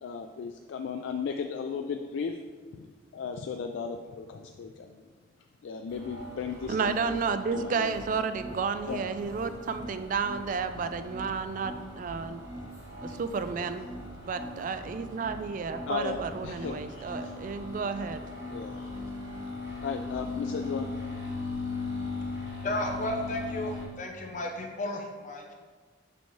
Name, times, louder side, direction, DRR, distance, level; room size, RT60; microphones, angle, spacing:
voice 1, 0.0-2.4 2.7-2.9 3.1-5.1 5.6-7.0 7.5-8.0 8.9-9.0 13.1-13.2 15.9-17.3 18.5-18.9 19.8-20.9, left 5 dB, 80° left, 4 dB, 0.3 m, -36 dB
sound 1, 5.9-23.9, left 2 dB, 70° right, 1.4 m, -39 dB
voice 2, 6.7-12.4 13.0-13.9 14.2-18.2, right 5 dB, 45° right, 10 dB, 0.3 m, -32 dB
voice 3, 22.6-25.5, left 1 dB, 45° left, 2 dB, 0.7 m, -33 dB
6.9 x 4.6 x 3.1 m, 1.5 s
head